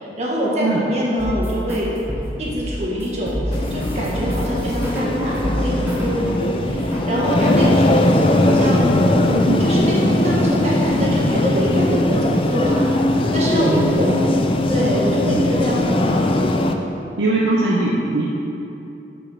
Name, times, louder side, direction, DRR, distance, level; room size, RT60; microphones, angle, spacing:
voice 1, 0.0-1.9 2.4-9.0 9.3-12.9 13.3-14.2 14.7-16.8, equal, 35° right, -5 dB, 1.6 m, -24 dB
sound 1, 1.2-6.3 6.6-7.1, equal, 15° right, 1.0 m, -27 dB
sound 2, 3.5-16.7, left 1 dB, 30° left, 0.4 m, -19 dB
voice 2, 13.6-14.0 15.3-15.5 17.2-18.2, right 2 dB, 85° right, -5 dB, 0.9 m, -20 dB
6.3 x 5.8 x 5.9 m, 2.9 s
head